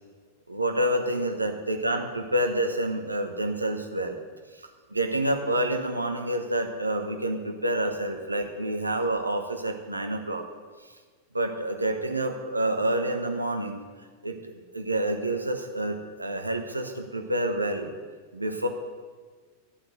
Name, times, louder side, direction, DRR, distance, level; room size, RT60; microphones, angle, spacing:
voice 1, 0.5-4.2 4.9-10.4 11.3-13.8 14.2-17.9 18.3-18.7, right 1 dB, 85° right, 5 dB, 1.1 m, -28 dB
11.5 x 5.8 x 8.0 m, 1.5 s
figure-of-eight pair, 90°, 0 cm